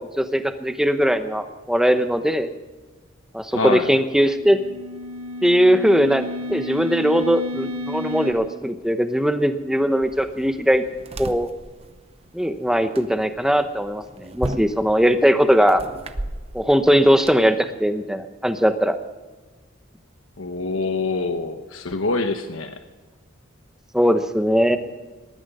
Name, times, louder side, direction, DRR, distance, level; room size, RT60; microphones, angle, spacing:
voice 1, 0.0-2.5 3.3-4.6 5.4-10.8 11.2-11.5 12.3-14.0 14.3-15.8 16.5-19.0 23.9-24.8, equal, 5° right, 8 dB, 0.9 m, -19 dB
voice 2, 3.5-3.9 20.4-22.8, left 3 dB, 80° left, 7 dB, 1.0 m, -25 dB
sound 1, 3.9-8.3, left 1 dB, 75° right, 2.3 m, -32 dB
sound 2, 10.0-17.3, right 1 dB, 30° right, 0.8 m, -36 dB
19.5 x 12.5 x 5.5 m, 1.3 s
head